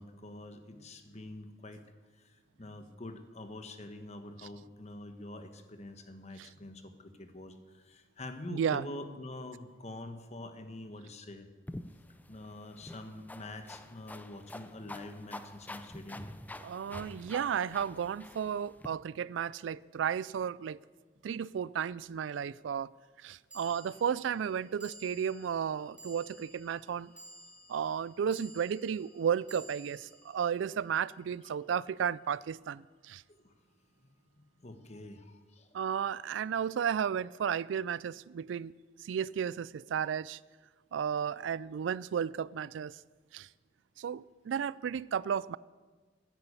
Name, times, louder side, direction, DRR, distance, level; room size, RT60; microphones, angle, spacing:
voice 1, 0.0-1.8 2.6-11.5 12.3-16.3 31.4-31.6 33.3-33.5 34.3-35.7, left 1 dB, 35° left, 1.1 m, -46 dB
voice 2, 8.5-8.8 16.6-20.8 21.2-22.9 23.2-27.1 27.7-33.2 35.7-38.7 39.0-40.4 40.9-42.9 43.3-43.5 44.0-45.6, right 8 dB, 85° right, 0.3 m, -33 dB
sound 1, 11.7-18.9, left 1 dB, 10° left, 0.5 m, -47 dB
sound 2, 21.4-21.5 23.5-31.9, right 2 dB, 5° right, 2.5 m, -55 dB
11.0 x 9.7 x 8.5 m
head